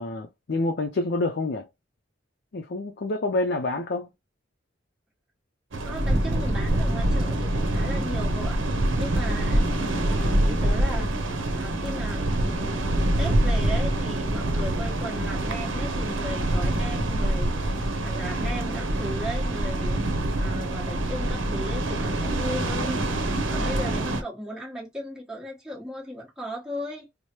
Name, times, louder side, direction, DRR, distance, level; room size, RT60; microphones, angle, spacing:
voice 1, 0.0-1.7 2.5-4.1, left 2 dB, 60° left, 0.5 m, -27 dB
sound 1, 5.7-24.2, right 1 dB, 85° right, 0.7 m, -25 dB
voice 2, 5.8-8.6 8.9-11.3 11.5-20.0 20.4-27.1, equal, 5° right, 1.1 m, -37 dB
4.7 x 2.0 x 2.9 m
head